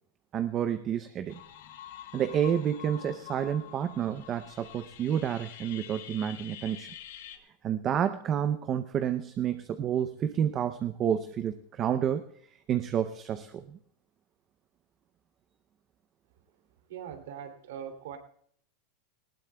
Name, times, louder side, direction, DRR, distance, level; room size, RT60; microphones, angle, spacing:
voice 1, 0.3-1.4 2.1-6.9 7.6-12.2 12.7-13.8, right 9 dB, 25° right, 10 dB, 0.6 m, -29 dB
sound 1, 1.3-7.4, left 11 dB, 80° left, 1.7 m, -47 dB
voice 2, 16.9-18.2, right 8 dB, 80° right, 6 dB, 2.7 m, -41 dB
19.5 x 18.0 x 2.3 m, 0.65 s
supercardioid pair, 160°, 0 cm